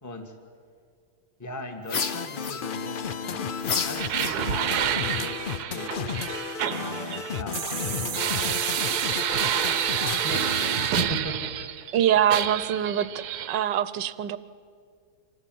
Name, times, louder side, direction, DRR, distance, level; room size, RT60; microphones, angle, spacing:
voice 1, 0.0-0.3 1.4-5.9 6.6-8.6 10.2-11.4, left 1 dB, 10° left, 4 dB, 1.8 m, -38 dB
sound 1, 1.9-10.9, left 6 dB, 90° left, 0.4 m, -33 dB
sound 2, 1.9-3.0 3.6-4.8, left 5 dB, 40° left, 1.1 m, -31 dB
sound 3, 3.9-11.9 12.3-13.5, right 10 dB, 65° right, 1.2 m, -28 dB
voice 2, 11.9-13.1 13.5-14.4, right 10 dB, 85° right, 15 dB, 1.4 m, -23 dB
25.5 x 16.0 x 9.2 m, 2.2 s
omnidirectional pair, 1.9 m